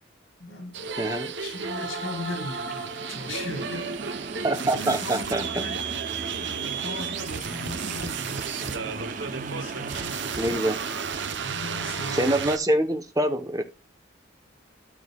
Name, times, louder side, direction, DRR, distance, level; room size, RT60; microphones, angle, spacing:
voice 1, 0.4-4.1 4.5-6.0 6.2-10.6 11.4-12.3, left 1 dB, 85° left, 4.7 m, -38 dB
sound 1, 0.7-12.6, right 6 dB, 65° right, 0.9 m, -33 dB
voice 2, 1.0-1.3 4.4-5.7 10.4-10.8 12.1-13.6, right 1 dB, 20° right, 0.9 m, -25 dB
sound 2, 2.6-11.4, right 4 dB, 40° right, 0.5 m, -39 dB
12.5 x 6.4 x 2.3 m
head